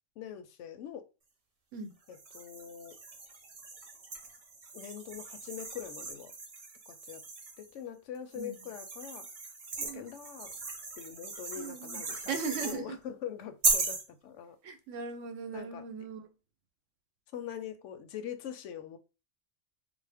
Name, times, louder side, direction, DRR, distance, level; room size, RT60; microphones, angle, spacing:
voice 1, 0.2-1.1 2.1-3.0 4.7-6.3 6.9-7.2 7.6-9.3 9.8-10.5 11.0-14.6 15.5-15.8 17.3-19.0, left 9 dB, 80° left, 0.9 m, -43 dB
sound 1, 2.1-7.7 8.3-12.8 13.6-14.1, right 3 dB, 40° right, 0.6 m, -37 dB
voice 2, 9.8-10.1 11.6-12.0 12.3-13.0 14.6-16.3, right 5 dB, 85° right, 1.1 m, -38 dB
4.1 x 2.1 x 3.4 m
omnidirectional pair, 1.2 m